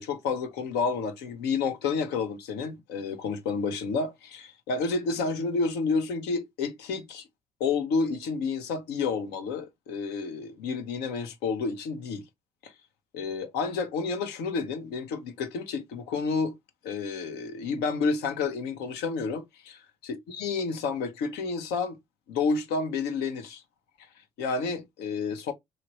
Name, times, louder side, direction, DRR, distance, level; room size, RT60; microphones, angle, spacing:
voice 1, 0.0-7.3 7.6-12.2 12.6-12.7 13.1-16.5 16.8-19.7 20.1-22.0 22.3-23.6 24.0-24.1 24.4-25.5, left 4 dB, 70° left, 0.7 m, -30 dB
3.0 x 2.4 x 3.0 m
hypercardioid pair, 55°, 18 cm